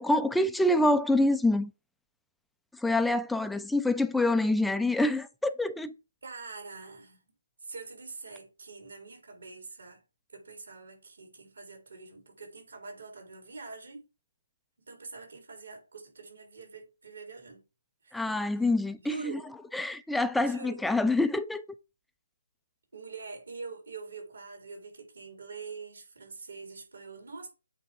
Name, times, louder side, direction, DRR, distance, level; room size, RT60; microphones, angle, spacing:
voice 1, 0.0-1.7 2.8-5.9 18.1-19.4 19.7-21.6, left 2 dB, ahead, 0.4 m, -26 dB
voice 2, 6.2-7.3 7.6-10.0 10.3-14.0 14.8-17.6 18.0-18.2 18.6-18.7 19.0-19.5 20.4-20.9 22.9-27.5, right 4 dB, 75° right, 3.9 m, -45 dB
8.1 x 3.5 x 5.2 m
figure-of-eight pair, 150°, 0 cm